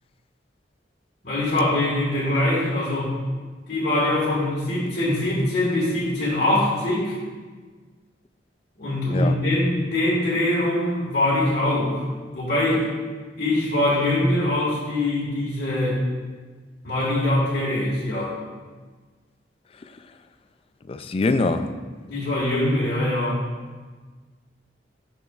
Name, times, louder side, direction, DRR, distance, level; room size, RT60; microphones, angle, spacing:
voice 1, 1.2-3.2 3.7-7.1 8.8-12.9 13.3-16.0 16.8-18.3 22.0-23.4, left 1 dB, 60° left, -10 dB, 1.7 m, -23 dB
voice 2, 20.9-21.7, left 3 dB, 30° left, 9 dB, 0.3 m, -23 dB
9.9 x 6.1 x 2.4 m, 1.4 s
head